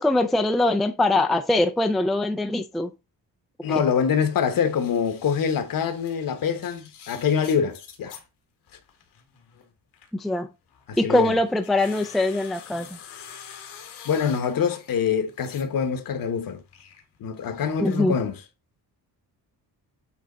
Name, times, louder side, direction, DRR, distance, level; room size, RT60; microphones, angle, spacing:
voice 1, 0.0-2.9 10.1-10.5 11.0-13.0 17.8-18.2, left 2 dB, ahead, 0.4 m, -22 dB
voice 2, 3.6-8.1 10.9-11.4 14.0-16.6 17.2-18.4, left 7 dB, 60° left, 1.1 m, -25 dB
sound 1, 4.7-8.3 8.7-10.2 10.7-15.9 16.2-18.0, left 8 dB, 85° left, 1.7 m, -47 dB
8.6 x 3.4 x 3.8 m
cardioid pair, 145°, 39 cm